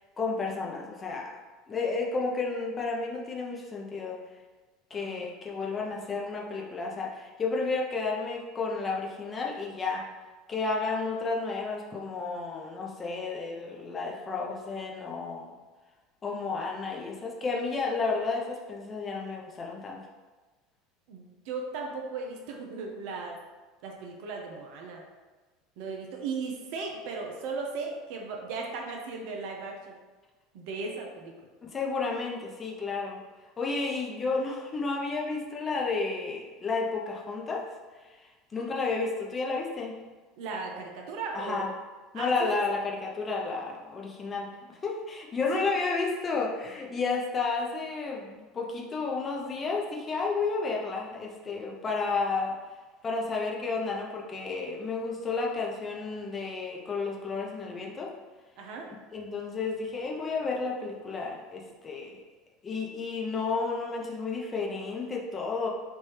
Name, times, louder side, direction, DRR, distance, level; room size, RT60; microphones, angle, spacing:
voice 1, 0.2-1.3 1.7-4.2 4.9-10.0 10.5-15.6 16.2-20.0 31.6-33.2 33.6-37.7 38.2-38.3 38.5-40.0 41.3-41.7 42.1-52.6 53.0-58.1 59.1-62.2 62.6-65.7, left 4 dB, 25° left, -2 dB, 0.7 m, -32 dB
voice 2, 4.9-5.3 5.7-5.8 21.1-23.4 23.8-25.0 25.8-30.0 30.5-31.3 40.4-41.7 42.1-42.5 45.5-45.7 58.6-58.9, right 4 dB, 60° right, 1 dB, 0.6 m, -37 dB
3.2 x 2.6 x 3.2 m, 1.3 s
figure-of-eight pair, 75°, 0 cm